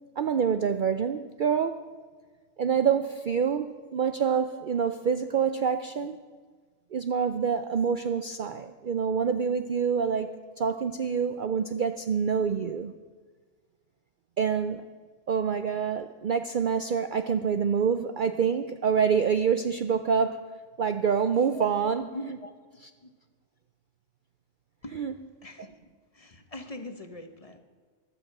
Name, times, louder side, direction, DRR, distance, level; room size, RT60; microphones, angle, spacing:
voice 1, 0.2-1.8 2.6-6.2 6.9-12.9 14.4-14.9 15.3-20.4 20.8-22.0 24.9-25.1, right 6 dB, 55° right, 9 dB, 0.6 m, -26 dB
voice 2, 21.5-22.5 23.0-23.1 24.8-25.0 25.4-25.8 26.1-27.6, left 1 dB, 30° left, 7 dB, 1.0 m, -41 dB
15.5 x 12.0 x 6.0 m, 1.5 s
omnidirectional pair, 1.3 m